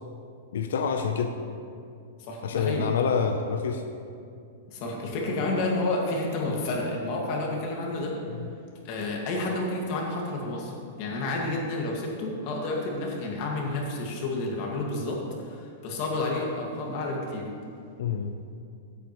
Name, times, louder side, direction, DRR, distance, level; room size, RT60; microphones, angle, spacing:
voice 1, 0.5-1.3 2.4-3.8 18.0-18.4, left 6 dB, 90° left, 5 dB, 0.6 m, -27 dB
voice 2, 2.2-2.9 4.7-8.2 8.8-17.5, left 2 dB, 35° left, -1 dB, 1.9 m, -30 dB
15.5 x 8.2 x 3.1 m, 2.4 s
supercardioid pair, 170°, 0 cm